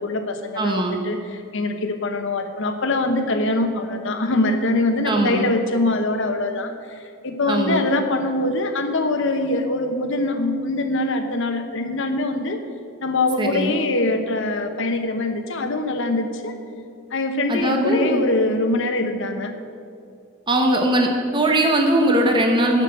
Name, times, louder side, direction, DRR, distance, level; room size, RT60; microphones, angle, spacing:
voice 1, 0.0-12.6 13.0-16.6 17.1-19.5, left 2 dB, 65° left, 6 dB, 1.0 m, -23 dB
voice 2, 0.6-1.0 5.0-5.5 7.5-7.8 13.4-13.7 17.5-18.2 20.5-22.8, right 1 dB, 25° right, 2 dB, 0.9 m, -20 dB
12.5 x 5.9 x 7.7 m, 2.4 s
head